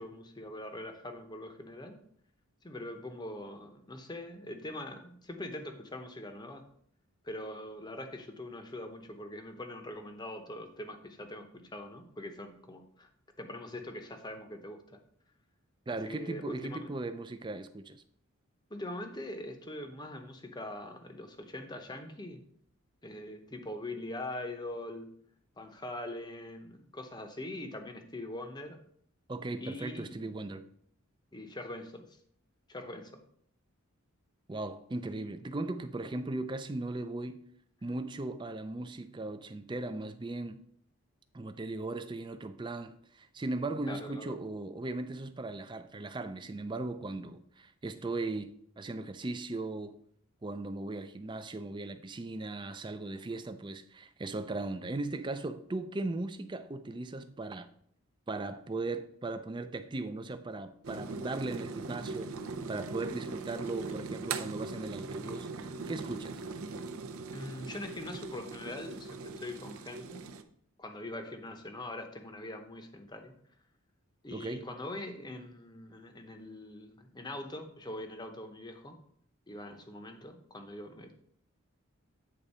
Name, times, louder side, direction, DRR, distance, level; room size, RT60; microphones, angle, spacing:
voice 1, 0.0-2.0 2.6-6.7 7.2-13.1 13.4-15.0 16.0-16.9 18.7-22.4 23.0-25.1 25.6-28.8 29.6-30.6 31.3-32.2 32.7-33.2 43.9-44.4 67.3-70.3 70.8-73.4 74.2-79.0 79.5-81.1, left 1 dB, 20° left, 0.8 m, -43 dB
voice 2, 15.9-18.0 29.3-30.6 34.5-37.5 37.8-40.6 41.3-50.0 50.4-57.7 58.3-62.3 62.7-66.4 74.3-74.7, right 2 dB, 20° right, 0.4 m, -38 dB
sound 1, 60.8-70.4, right 4 dB, 75° right, 0.6 m, -40 dB
8.7 x 3.9 x 5.4 m
head